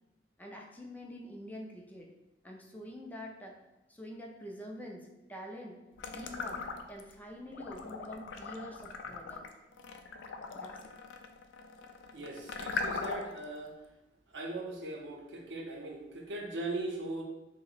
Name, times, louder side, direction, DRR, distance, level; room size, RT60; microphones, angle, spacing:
voice 1, 0.4-2.1 2.4-3.6 3.9-5.8 6.1-6.6 6.9-9.5 10.5-10.8, equal, 10° left, 0 dB, 0.3 m, -46 dB
sound 1, 6.0-7.1 7.5-13.4, left 4 dB, 85° left, 0.3 m, -40 dB
voice 2, 12.1-13.7 14.3-17.2, right 2 dB, 75° right, 0 dB, 0.6 m, -39 dB
2.8 x 2.1 x 3.9 m, 0.99 s
head